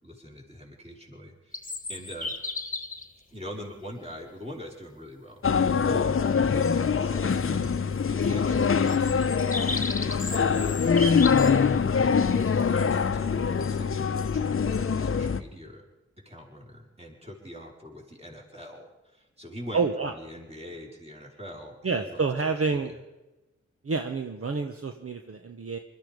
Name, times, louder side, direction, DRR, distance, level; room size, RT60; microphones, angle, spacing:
voice 1, 0.0-2.3 3.3-9.4 9.9-11.3 11.7-15.8 16.2-23.0, equal, 20° right, -1 dB, 5.1 m, -43 dB
sound 1, 1.5-3.1 4.1-4.2 8.9-11.6, left 3 dB, 30° left, 1.6 m, -34 dB
sound 2, 5.4-15.4, left 6 dB, 45° left, 0.8 m, -24 dB
voice 2, 19.7-20.1 21.8-22.9 23.8-25.8, right 4 dB, 50° right, 6 dB, 1.2 m, -28 dB
21.0 x 13.0 x 5.3 m, 1.0 s
cardioid pair, 45°, 29 cm